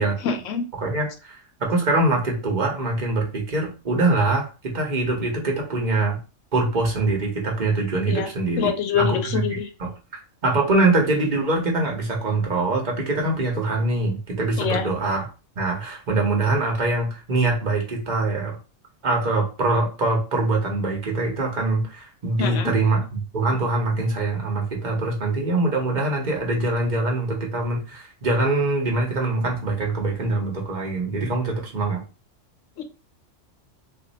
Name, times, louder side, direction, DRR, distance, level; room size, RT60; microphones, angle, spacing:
voice 1, 0.0-0.6 8.1-8.3 8.6-9.7 14.6-14.8 22.4-22.7 32.8-32.9, left 7 dB, 80° left, 7 dB, 0.9 m, -25 dB
voice 2, 0.7-6.2 6.5-9.9 10.4-15.3 15.6-18.6 19.0-32.0, right 2 dB, 40° right, 0 dB, 1.1 m, -23 dB
2.6 x 2.5 x 3.9 m, 0.32 s
omnidirectional pair, 1.3 m